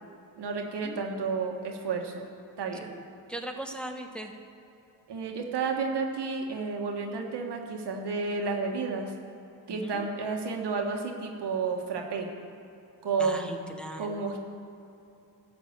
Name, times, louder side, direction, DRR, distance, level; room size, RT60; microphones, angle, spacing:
voice 1, 0.4-2.3 2.6-2.9 5.1-9.1 9.7-12.3 13.0-14.4, right 4 dB, 75° right, 3 dB, 1.5 m, -31 dB
voice 2, 3.3-4.3 9.7-10.1 13.2-14.2, right 1 dB, ahead, 3 dB, 1.0 m, -39 dB
12.0 x 5.9 x 8.0 m, 2.8 s
cardioid pair, 70°, 41 cm